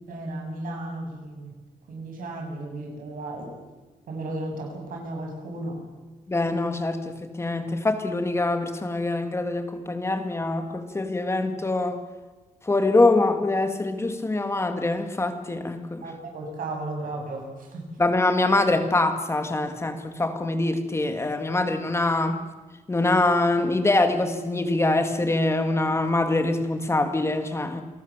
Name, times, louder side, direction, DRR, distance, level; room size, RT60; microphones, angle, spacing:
voice 1, 0.1-1.5 1.9-3.5 4.1-5.8 16.0-17.8, right 2 dB, 85° right, 1 dB, 7.8 m, -34 dB
voice 2, 6.3-12.0 12.7-16.1 18.0-22.4 22.9-27.8, left 2 dB, 20° left, 7 dB, 2.2 m, -24 dB
28.5 x 19.0 x 7.5 m, 1.3 s
wide cardioid pair, 145°, 14 cm